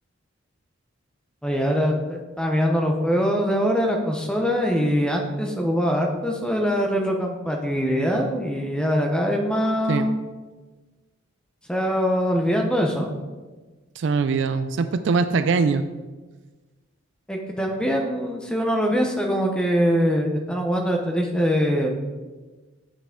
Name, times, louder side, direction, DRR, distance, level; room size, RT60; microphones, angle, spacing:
voice 1, 1.4-10.2 11.7-13.1 17.3-21.9, equal, 5° left, 2 dB, 0.6 m, -23 dB
voice 2, 14.0-15.8, right 4 dB, 60° right, 11 dB, 0.3 m, -22 dB
8.3 x 5.8 x 3.7 m, 1.3 s
head